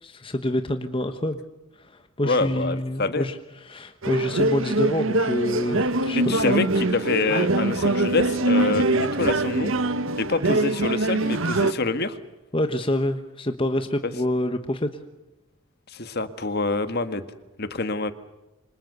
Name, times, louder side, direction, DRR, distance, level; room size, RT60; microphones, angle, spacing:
voice 1, 0.0-1.4 1.8-1.9 2.2-3.4 3.6-6.7 12.5-15.0, left 1 dB, 25° left, 8 dB, 1.2 m, -27 dB
voice 2, 2.2-3.3 6.1-9.7 10.2-12.2 14.0-14.1 15.9-17.3 17.6-18.1, left 3 dB, 45° left, 11 dB, 1.7 m, -26 dB
sound 1, 4.0-11.7, right 2 dB, 60° right, 1.4 m, -23 dB
27.5 x 26.0 x 6.8 m, 1.0 s
head